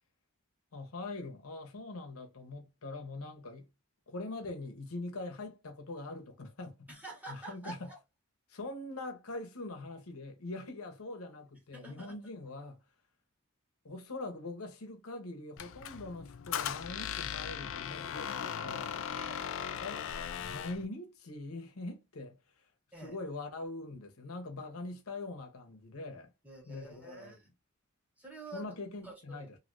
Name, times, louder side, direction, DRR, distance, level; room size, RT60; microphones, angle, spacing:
voice 1, 0.7-3.7 4.1-6.9 7.3-7.9 8.5-12.8 13.8-19.0 19.8-20.0 20.3-22.7 23.0-26.3 26.6-27.3 28.5-29.6, left 2 dB, 85° left, 0.9 m, -43 dB
voice 2, 6.9-8.0 11.7-12.2 19.1-19.5 22.9-23.2 26.4-27.5 28.2-28.7 29.0-29.1, right 3 dB, 5° right, 1.3 m, -47 dB
Squeak, 15.6-20.9, left 8 dB, 65° left, 0.4 m, -38 dB
3.2 x 2.7 x 2.5 m
head